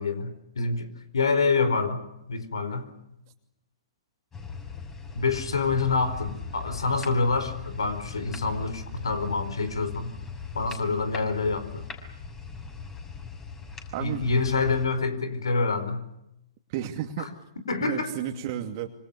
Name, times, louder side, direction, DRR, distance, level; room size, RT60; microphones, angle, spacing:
voice 1, 0.0-2.0 2.3-2.9 5.1-10.1 10.5-11.8 14.0-16.0 17.2-17.3 17.7-18.1, left 4 dB, 80° left, 12 dB, 4.7 m, -27 dB
sound 1, 4.3-14.9, left 5 dB, 15° left, 6.5 m, -40 dB
voice 2, 13.9-14.2 16.7-17.3 17.8-18.9, right 10 dB, 45° right, 4 dB, 2.6 m, -32 dB
26.5 x 26.0 x 6.9 m, 0.83 s
hypercardioid pair, 120°, 3 cm